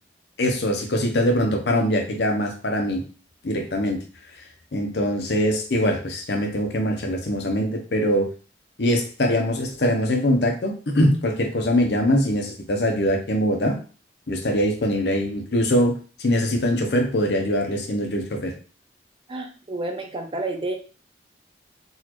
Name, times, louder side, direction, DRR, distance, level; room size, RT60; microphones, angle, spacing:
voice 1, 0.4-3.0 3.4-4.0 4.4-4.5 4.7-8.3 8.8-13.8 14.3-18.5, equal, 65° left, 3 dB, 0.7 m, -22 dB
voice 2, 19.3-20.7, right 2 dB, 30° right, 4 dB, 0.5 m, -30 dB
4.0 x 2.4 x 3.0 m, 0.36 s
head